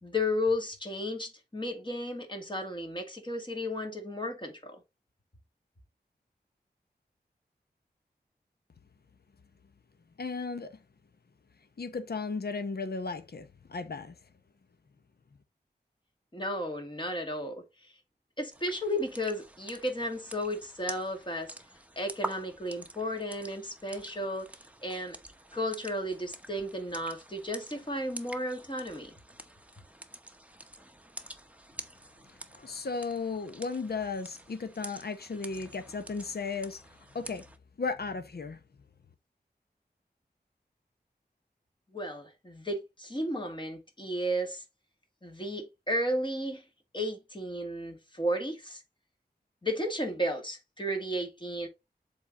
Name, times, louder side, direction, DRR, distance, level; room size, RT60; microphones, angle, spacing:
voice 1, 0.0-4.8 16.3-17.9 18.4-21.5 22.0-24.5 24.8-25.2 25.5-29.1 41.9-44.6 45.2-46.6 46.9-48.8 49.6-51.7, equal, 30° left, 2.2 m, -33 dB
voice 2, 10.2-10.8 11.8-14.2 32.5-36.8 37.1-37.4 37.8-38.6, left 4 dB, 70° left, 0.9 m, -35 dB
sound 1, 18.5-37.6, right 1 dB, 10° right, 0.9 m, -47 dB
7.2 x 4.0 x 4.1 m
wide cardioid pair, 80°, 17 cm